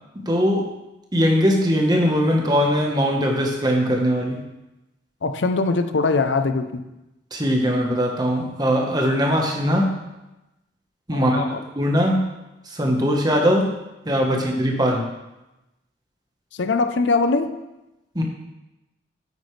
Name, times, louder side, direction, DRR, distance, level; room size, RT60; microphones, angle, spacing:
voice 1, 0.1-0.7 1.1-4.4 7.3-10.0 11.1-12.3 12.6-13.7 14.0-15.1 18.1-18.2, equal, 20° right, 1 dB, 1.2 m, -20 dB
voice 2, 5.2-6.8 11.1-11.6 16.5-17.5, left 3 dB, 85° left, 8 dB, 0.6 m, -22 dB
9.3 x 8.2 x 3.3 m, 0.97 s
head